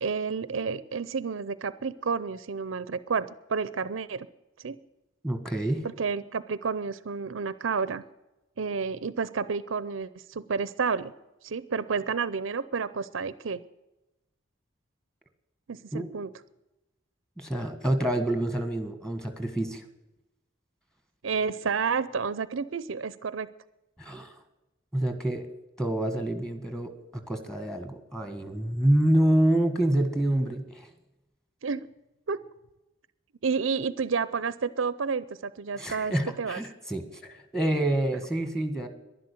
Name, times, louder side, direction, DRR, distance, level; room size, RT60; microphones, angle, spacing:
voice 1, 0.0-4.3 4.6-4.8 6.0-8.0 8.6-11.1 11.4-13.6 15.7-16.3 21.2-23.5 31.6-31.9 32.3-32.4 33.4-36.6, right 5 dB, 70° right, 17 dB, 0.6 m, -30 dB
voice 2, 5.2-5.9 15.9-16.1 17.4-19.8 24.0-24.3 24.9-25.5 25.8-30.9 35.8-38.9, right 1 dB, 5° left, 7 dB, 1.6 m, -27 dB
11.5 x 11.5 x 8.7 m, 0.99 s
head